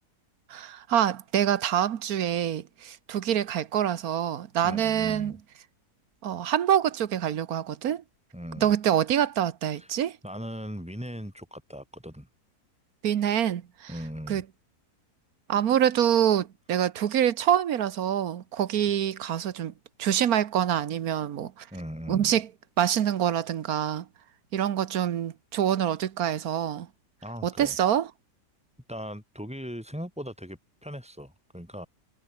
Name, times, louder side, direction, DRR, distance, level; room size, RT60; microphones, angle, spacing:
voice 1, 0.5-5.3 6.2-8.0 8.6-10.2 13.0-13.9 14.3-14.4 15.5-19.7 20.0-21.7 22.1-22.5 22.8-24.1 24.5-26.9 27.4-28.1, right 10 dB, 65° right, 1.4 m, -26 dB
voice 2, 4.6-5.4 8.3-8.7 9.8-9.9 10.2-12.3 13.9-14.4 21.7-22.4 27.2-27.8 28.9-31.9, equal, 5° right, 5.4 m, -39 dB
omnidirectional pair, 1.7 m